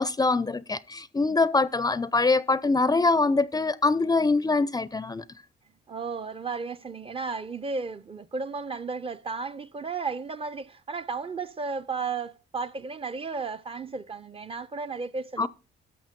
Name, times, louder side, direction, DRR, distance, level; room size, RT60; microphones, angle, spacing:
voice 1, 0.0-5.2 15.4-15.5, left 3 dB, 20° left, 0.4 m, -24 dB
voice 2, 5.9-15.5, right 4 dB, 30° right, 0.5 m, -34 dB
13.0 x 6.4 x 5.1 m
cardioid pair, 90°, 20 cm